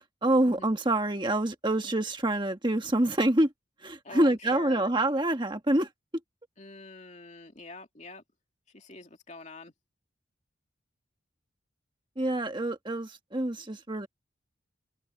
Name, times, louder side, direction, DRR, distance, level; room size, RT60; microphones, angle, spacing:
voice 1, 0.2-3.5 3.8-5.9 12.2-14.1, right 1 dB, 25° right, 1.5 m, -26 dB
voice 2, 4.0-4.9 6.6-8.2 8.7-9.7, left 3 dB, 35° left, 2.6 m, -45 dB
open air
head